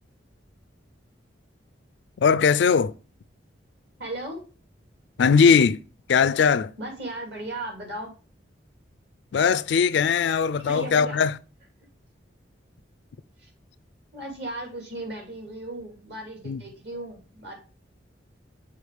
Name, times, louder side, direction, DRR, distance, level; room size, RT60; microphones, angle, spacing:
voice 1, 2.2-2.9 5.2-5.8 6.1-6.7 9.3-11.3 16.5-16.6, left 6 dB, 65° left, 0.3 m, -20 dB
voice 2, 4.0-4.5 6.8-8.1 10.6-11.2 13.4-13.5 14.1-17.6, right 1 dB, 60° right, 2.7 m, -36 dB
6.4 x 4.7 x 3.4 m
head